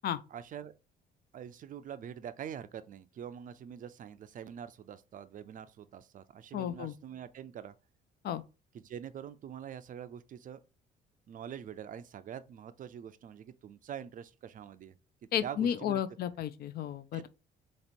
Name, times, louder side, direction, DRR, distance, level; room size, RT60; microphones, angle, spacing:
voice 1, 0.3-0.7 1.3-7.7 8.7-10.6 11.3-14.9 15.4-16.0 17.1-17.3, right 9 dB, 45° right, 0.4 m, -44 dB
voice 2, 6.5-6.9 8.2-8.4 15.3-17.2, left 9 dB, 55° left, 0.4 m, -33 dB
3.0 x 2.9 x 4.2 m
cardioid pair, 115°, 19 cm